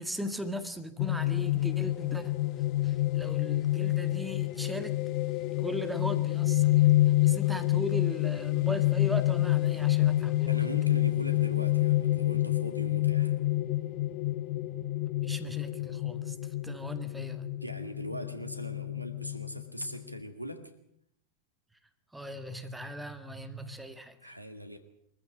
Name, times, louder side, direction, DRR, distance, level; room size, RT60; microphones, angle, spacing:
voice 1, 0.0-2.3 2.8-5.0 5.6-6.9 7.2-10.7 15.2-16.4 16.6-17.5 22.1-24.3, equal, 5° right, 8 dB, 1.9 m, -38 dB
sound 1, 1.0-20.2, left 16 dB, 40° left, 0.9 m, -28 dB
voice 2, 10.5-13.3 17.6-20.7 24.2-24.8, equal, 90° right, 8 dB, 2.2 m, -40 dB
23.5 x 14.5 x 8.8 m, 0.75 s
figure-of-eight pair, 90°, 0 cm